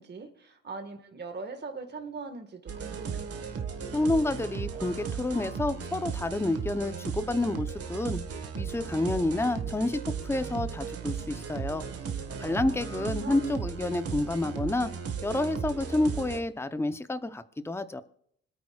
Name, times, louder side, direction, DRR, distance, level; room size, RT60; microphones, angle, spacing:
voice 1, 0.0-3.3 12.7-13.4, right 4 dB, 35° right, 6 dB, 1.7 m, -41 dB
sound 1, 2.7-16.4, right 6 dB, 50° right, 1.7 m, -36 dB
voice 2, 3.9-8.2 8.5-11.9 12.4-14.9 15.2-18.0, left 2 dB, 10° left, 11 dB, 0.8 m, -29 dB
26.0 x 9.2 x 2.4 m, 0.67 s
cardioid pair, 90°, 30 cm